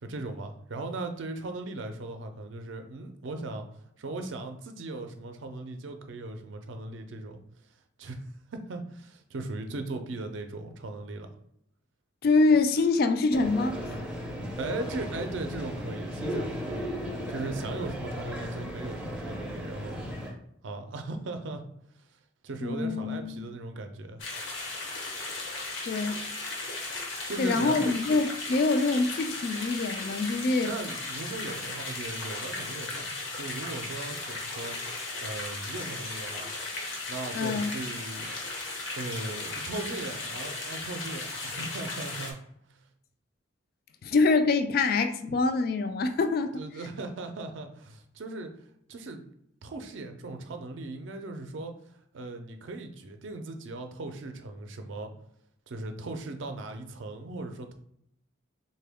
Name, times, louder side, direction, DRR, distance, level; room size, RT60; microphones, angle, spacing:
voice 1, 0.0-3.7 4.0-7.4 8.0-8.2 8.5-11.3 14.6-16.8 17.3-20.0 20.6-21.6 22.4-24.2 27.3-28.0 30.6-34.8 35.2-36.5 37.1-38.3 39.0-42.4 46.5-48.5 48.9-49.2 49.6-51.7 52.1-55.1 55.7-57.7, right 2 dB, 65° right, 0.5 m, -38 dB
voice 2, 12.2-14.0 22.6-23.5 25.9-26.2 27.4-30.7 37.3-37.7 44.0-46.6, left 3 dB, 50° left, 0.3 m, -25 dB
sound 1, 13.3-20.3, equal, 5° right, 0.5 m, -36 dB
sound 2, 24.2-42.3, left 2 dB, 65° left, 0.8 m, -36 dB
3.5 x 2.2 x 3.4 m
head